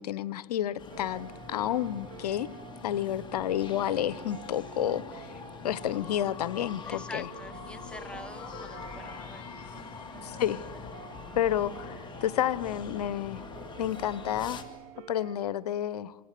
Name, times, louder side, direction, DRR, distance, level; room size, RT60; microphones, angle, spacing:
voice 1, 0.0-2.5 2.8-5.3 5.6-7.3 10.2-10.6 11.3-13.5 13.8-14.6 15.1-16.2, left 11 dB, 85° left, 18 dB, 0.9 m, -30 dB
sound 1, 0.8-14.6, left 5 dB, 25° left, 2.4 m, -44 dB
sound 2, 0.9-15.4, right 10 dB, 45° right, 3.2 m, -50 dB
voice 2, 6.7-9.4, left 2 dB, 5° left, 10 dB, 1.1 m, -45 dB
sound 3, 7.5-12.3, left 7 dB, 55° left, 7.2 m, -53 dB
27.0 x 26.0 x 6.7 m, 1.5 s
hypercardioid pair, 120°, 20 cm